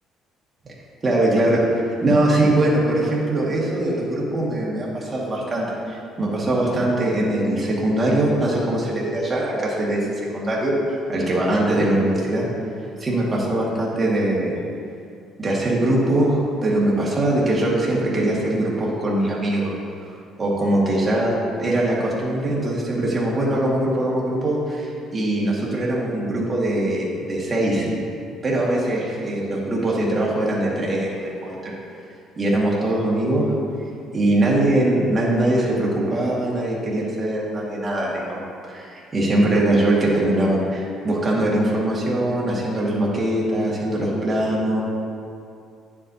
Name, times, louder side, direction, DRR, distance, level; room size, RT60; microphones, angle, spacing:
voice 1, 1.0-1.6 2.0-10.1 10.3-10.7 11.1-12.5 13.0-14.6 15.4-19.7 20.4-27.9 28.4-31.8 32.4-33.5 34.1-44.8, right 1 dB, 25° right, -5 dB, 1.9 m, -22 dB
9.5 x 7.5 x 2.8 m, 2.4 s
cardioid pair, 125°, 0 cm